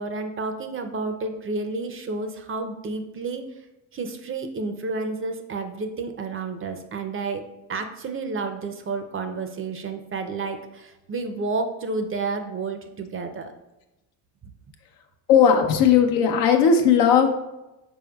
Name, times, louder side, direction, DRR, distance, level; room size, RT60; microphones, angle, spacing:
voice 1, 0.0-3.4 3.9-7.4 7.7-13.5, right 3 dB, 30° right, 7 dB, 0.5 m, -30 dB
voice 2, 15.3-17.3, left 7 dB, 85° left, 4 dB, 0.8 m, -17 dB
5.3 x 4.5 x 2.3 m, 0.97 s
supercardioid pair, 75°, 47 cm